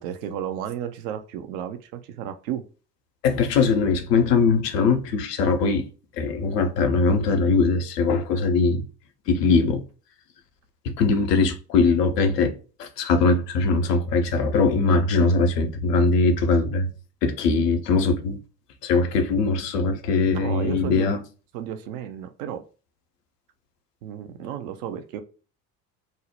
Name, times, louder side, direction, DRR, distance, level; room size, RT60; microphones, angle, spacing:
voice 1, 0.0-2.6 20.3-21.1 21.5-22.6 24.0-25.2, right 9 dB, 55° right, 0.6 m, -33 dB
voice 2, 3.2-5.9 6.2-8.8 9.3-9.8 10.8-12.5 12.8-16.9 17.2-18.4 18.8-21.2, left 4 dB, 70° left, 0.7 m, -21 dB
2.6 x 2.0 x 3.0 m
figure-of-eight pair, 60°, 50 cm